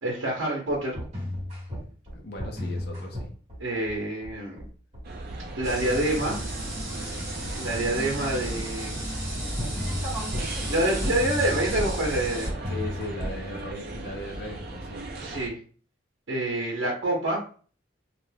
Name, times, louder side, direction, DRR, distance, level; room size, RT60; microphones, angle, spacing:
voice 1, 0.0-1.0 3.6-4.6 5.6-6.4 7.6-9.0 10.6-12.5 15.2-15.6 16.3-17.4, right 1 dB, 75° right, -2 dB, 0.7 m, -27 dB
sound 1, 0.7-13.4, left 1 dB, 35° right, 1.1 m, -34 dB
voice 2, 2.1-3.3 12.7-15.0, left 1 dB, 50° left, 2 dB, 0.5 m, -37 dB
sound 2, 5.0-15.5, right 2 dB, 50° right, 0.4 m, -38 dB
sound 3, 5.6-12.5, right 1 dB, 15° right, 0.8 m, -34 dB
2.4 x 2.2 x 3.2 m, 0.41 s
head